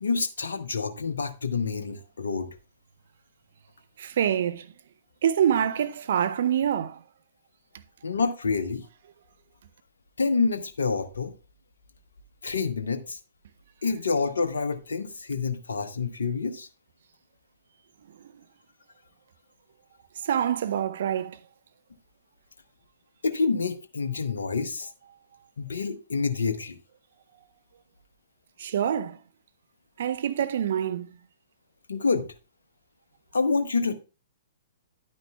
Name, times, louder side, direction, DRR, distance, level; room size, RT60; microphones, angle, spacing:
voice 1, 0.0-2.5 8.0-8.8 10.2-11.3 12.4-13.2 13.8-16.7 23.2-24.9 25.6-26.8 31.9-32.3 33.3-33.9, left 4 dB, 70° left, 0.8 m, -27 dB
voice 2, 4.0-4.7 5.2-7.0 18.2-18.3 20.2-21.4 28.6-29.2 30.0-31.1, right 9 dB, 55° right, 0.6 m, -26 dB
10.5 x 9.3 x 2.3 m
figure-of-eight pair, 115°, 0 cm